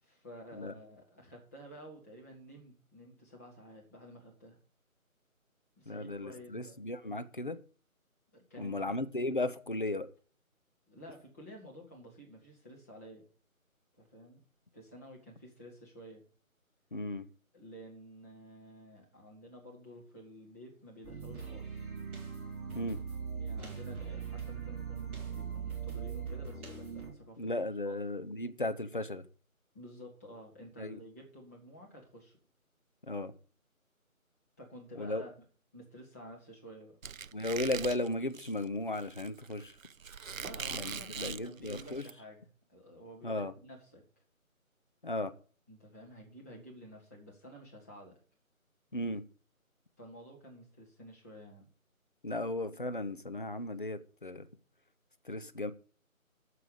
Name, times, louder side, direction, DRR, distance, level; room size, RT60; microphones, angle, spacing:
voice 1, 0.0-4.6 5.8-6.8 8.3-9.0 10.9-13.2 14.0-14.4 14.7-16.2 17.5-22.0 23.3-28.0 29.7-32.4 34.6-35.3 35.7-37.0 40.3-44.0 45.7-48.2 50.0-51.7, equal, 10° left, 1.6 m, -51 dB
voice 2, 5.9-7.6 8.6-10.1 16.9-17.2 22.7-23.0 27.4-29.2 30.8-31.0 33.1-33.3 35.0-35.2 37.3-39.7 40.7-42.1 43.2-43.5 45.0-45.3 48.9-49.2 52.2-54.5 55.2-55.7, left 2 dB, 35° left, 0.7 m, -35 dB
sound 1, 21.0-27.1, right 6 dB, 10° right, 1.7 m, -40 dB
Squeak, 37.0-42.1, right 6 dB, 70° right, 0.5 m, -42 dB
8.7 x 6.9 x 8.4 m
figure-of-eight pair, 155°, 42 cm